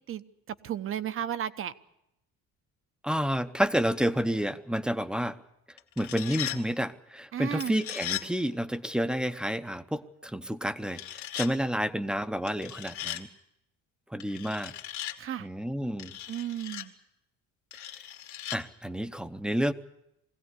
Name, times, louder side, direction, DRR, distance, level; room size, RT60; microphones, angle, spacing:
voice 1, 0.1-1.7 7.3-7.8 15.2-15.5 16.3-16.9, right 10 dB, 45° right, 13 dB, 1.0 m, -34 dB
voice 2, 3.0-5.4 6.0-11.0 11.4-13.3 14.1-14.7 15.4-16.2 18.5-19.7, equal, 5° right, 11 dB, 0.8 m, -30 dB
sound 1, 5.8-6.6 7.6-8.3 10.9-11.5 12.5-13.2 14.2-15.2 16.0-16.9 17.7-18.6, left 11 dB, 65° left, 2.1 m, -37 dB
22.0 x 16.5 x 9.6 m, 0.83 s
cardioid pair, 145°, 31 cm